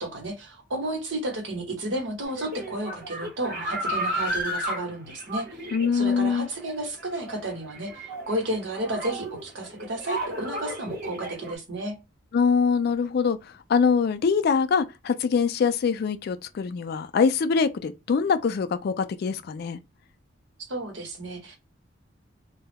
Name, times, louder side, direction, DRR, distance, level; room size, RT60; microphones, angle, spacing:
voice 1, 0.0-5.6 5.9-12.0 20.7-21.6, right 1 dB, 75° right, 1.0 m, -32 dB
sound 1, 2.2-11.5, equal, 50° right, 0.9 m, -33 dB
voice 2, 5.7-6.5 12.3-19.8, left 5 dB, 55° left, 0.3 m, -24 dB
2.2 x 2.0 x 3.3 m
head